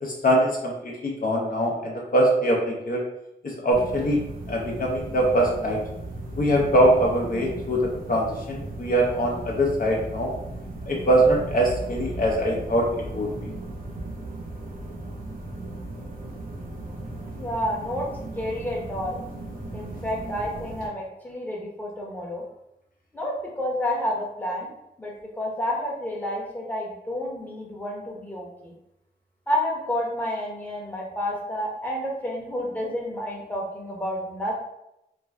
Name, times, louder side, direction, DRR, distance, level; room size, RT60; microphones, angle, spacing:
voice 1, 0.0-3.0 3.4-4.2 4.5-5.8 6.4-10.3 10.9-12.9 13.1-13.3, right 1 dB, 55° left, -2 dB, 0.6 m, -23 dB
sound 1, 3.7-20.9, right 1 dB, 55° right, 0.7 m, -36 dB
voice 2, 17.4-18.1 18.4-19.2 19.7-22.4 23.1-24.7 25.0-28.7 29.5-34.5, left 1 dB, 10° left, -3 dB, 0.8 m, -30 dB
2.5 x 2.2 x 3.2 m, 0.84 s
wide cardioid pair, 85°, 17 cm